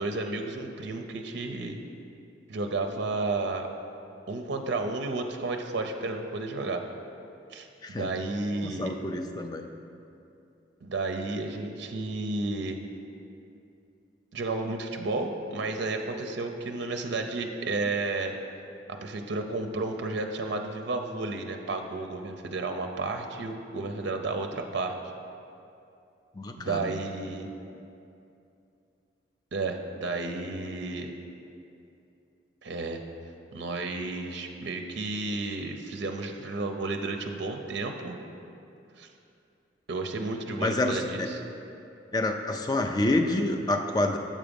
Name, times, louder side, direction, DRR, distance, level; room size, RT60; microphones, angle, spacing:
voice 1, 0.0-1.8 2.5-3.7 4.3-6.8 7.5-7.7 8.0-9.0 10.8-12.8 14.3-18.3 19.0-25.0 26.6-27.5 29.5-31.1 32.6-33.0 33.5-38.2 39.0-39.1 39.9-41.4, right 3 dB, 65° right, 4 dB, 0.5 m, -32 dB
voice 2, 8.6-9.7 26.4-26.9 40.6-41.3 42.1-44.2, left 2 dB, 20° left, 5 dB, 0.3 m, -28 dB
7.4 x 4.9 x 5.2 m, 2.6 s
head